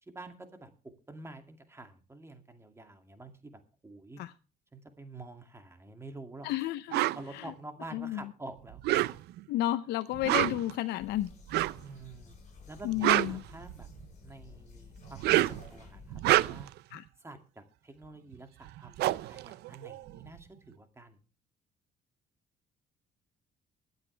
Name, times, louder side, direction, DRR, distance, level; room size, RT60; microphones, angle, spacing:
voice 1, 0.0-4.2 4.7-6.5 7.1-8.8 11.8-12.4 12.7-13.9 14.2-16.7 17.2-19.0 19.2-21.2, right 2 dB, 15° right, 6 dB, 2.3 m, -48 dB
voice 2, 6.4-7.0 7.3-7.5 7.9-8.3 9.5-11.3 12.8-13.4 16.9-17.0, left 14 dB, 80° left, 11 dB, 0.6 m, -32 dB
sound 1, 6.9-7.2 8.7-9.4 10.1-10.7 11.5-11.8 12.8-14.0 15.0-15.7 16.1-16.8 18.3-18.4 18.7-20.3, right 16 dB, 75° right, 0.5 m, -28 dB
sound 2, 11.0-16.6, left 4 dB, 45° left, 6.8 m, -53 dB
22.0 x 8.0 x 3.3 m, 0.34 s
cardioid pair, 110°, 17 cm